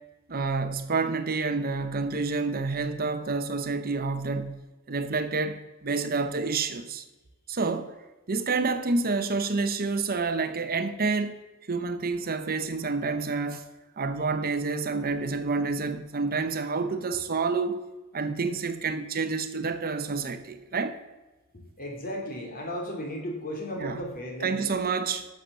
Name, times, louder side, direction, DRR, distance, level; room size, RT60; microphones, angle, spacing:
voice 1, 0.3-4.6 4.9-7.0 7.5-7.9 8.3-11.3 11.7-13.6 14.0-17.8 18.1-21.0 23.8-24.0 24.4-25.3, right 4 dB, 45° right, 0.8 m, -28 dB
voice 2, 21.8-24.6, equal, 40° left, 2.9 m, -34 dB
11.5 x 6.8 x 6.8 m
head